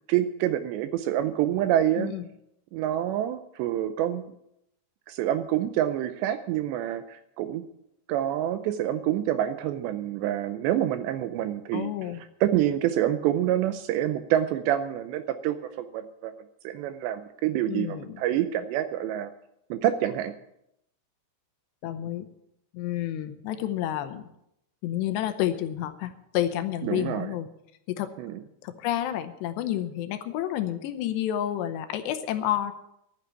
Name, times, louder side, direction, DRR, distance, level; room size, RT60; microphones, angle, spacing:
voice 1, 0.1-2.1 2.7-4.2 5.1-7.6 8.1-11.9 12.4-16.3 16.6-19.3 19.7-20.4 26.8-27.3 28.2-28.4, right 12 dB, 80° right, 11 dB, 2.6 m, -27 dB
voice 2, 11.7-12.2 17.7-18.2 21.8-22.3 22.7-24.2 24.8-27.5 27.9-28.1 28.6-32.7, left 12 dB, 75° left, 9 dB, 2.8 m, -30 dB
11.5 x 9.3 x 8.2 m, 0.79 s
omnidirectional pair, 5.5 m